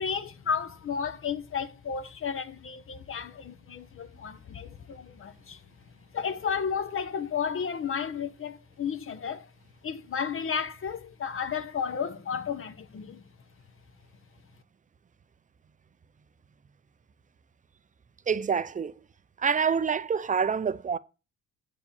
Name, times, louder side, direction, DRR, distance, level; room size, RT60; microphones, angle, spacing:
voice 1, 0.0-5.6 6.1-9.5 9.8-13.2, left 6 dB, 45° left, 0.8 m, -33 dB
voice 2, 18.3-18.9 19.4-21.0, right 6 dB, 25° right, 0.5 m, -26 dB
7.9 x 4.7 x 7.0 m
cardioid pair, 90°, 30 cm